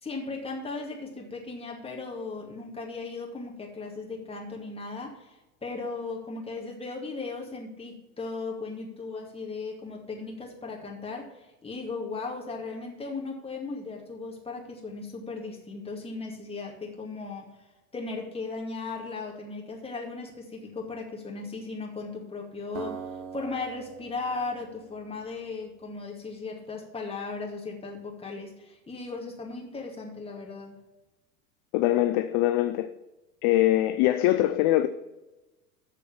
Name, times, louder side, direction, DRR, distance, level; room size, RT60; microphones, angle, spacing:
voice 1, 0.0-17.5 17.9-23.0 23.3-30.8, left 3 dB, 10° left, -1 dB, 2.3 m, -37 dB
Acoustic guitar, 22.7-25.9, right 7 dB, 35° right, 1.2 m, -43 dB
voice 2, 31.7-32.9 33.4-34.9, left 14 dB, 35° left, 12 dB, 0.4 m, -23 dB
7.3 x 6.8 x 7.0 m, 1.0 s
figure-of-eight pair, 90°, 46 cm